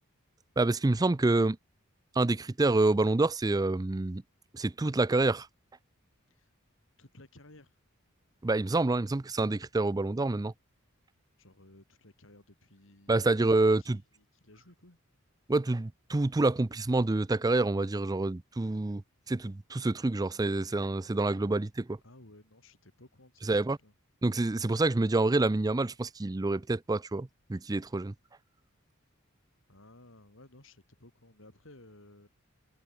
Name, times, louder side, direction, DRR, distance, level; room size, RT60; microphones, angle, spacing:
voice 1, 0.6-1.6 2.2-4.2 4.5-5.5 8.4-10.5 13.1-14.0 15.5-19.0 19.3-22.0 23.5-23.8 24.2-28.1, right 2 dB, 20° right, 0.4 m, -27 dB
voice 2, 7.0-7.8 11.4-13.3 13.8-15.0 22.0-23.9 29.7-32.3, left 1 dB, 65° left, 4.0 m, -56 dB
head